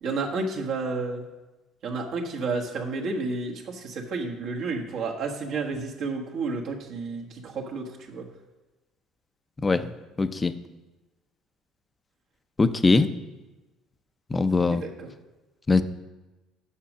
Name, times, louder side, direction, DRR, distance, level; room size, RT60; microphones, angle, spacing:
voice 1, 0.0-1.2 1.8-8.3 14.7-15.1, right 3 dB, 65° right, 1 dB, 1.4 m, -31 dB
voice 2, 10.2-10.5 12.6-13.1 14.3-14.8 15.7-15.8, left 3 dB, 20° left, 11 dB, 0.5 m, -21 dB
7.2 x 6.2 x 6.0 m, 1.1 s
supercardioid pair, 95°, 0 cm